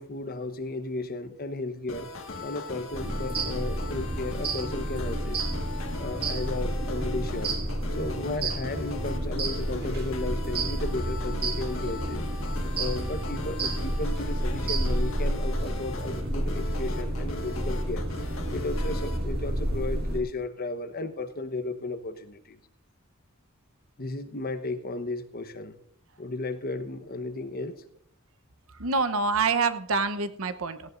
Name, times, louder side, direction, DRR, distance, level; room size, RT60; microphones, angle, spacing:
voice 1, 0.0-2.1 2.4-5.5 6.0-7.5 7.9-12.3 12.7-18.1 18.5-22.6 24.0-25.8 26.2-27.8, left 2 dB, 45° left, 10 dB, 1.0 m, -34 dB
sound 1, 1.9-19.2, left 3 dB, 65° left, 1.7 m, -40 dB
sound 2, 2.9-20.2, right 1 dB, 50° right, 2.1 m, -30 dB
voice 2, 28.8-30.8, right 4 dB, 75° right, 10 dB, 0.9 m, -26 dB
17.5 x 16.0 x 2.6 m, 0.68 s
head